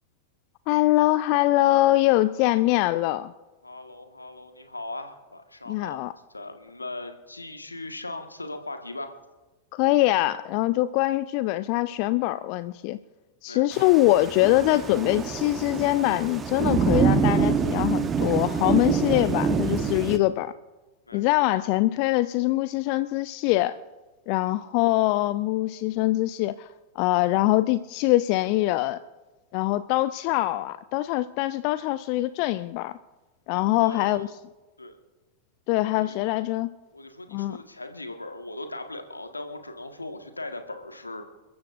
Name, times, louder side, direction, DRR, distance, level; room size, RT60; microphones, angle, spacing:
voice 1, 0.7-3.3 5.7-6.1 9.7-13.0 13.4-20.5 21.1-23.8 24.3-26.7 27.0-29.0 29.5-33.0 33.5-34.3 35.7-36.7 37.3-37.6, left 17 dB, 45° left, 15 dB, 0.4 m, -23 dB
voice 2, 3.6-9.2 13.5-13.9 21.1-21.5 33.8-34.2 34.8-35.0 36.0-36.2 36.9-41.2, left 2 dB, 80° left, 6 dB, 1.6 m, -39 dB
Thunder / Rain, 13.7-20.2, right 6 dB, 20° right, 1.0 m, -25 dB
29.0 x 14.0 x 2.6 m, 1.2 s
figure-of-eight pair, 90°, 0 cm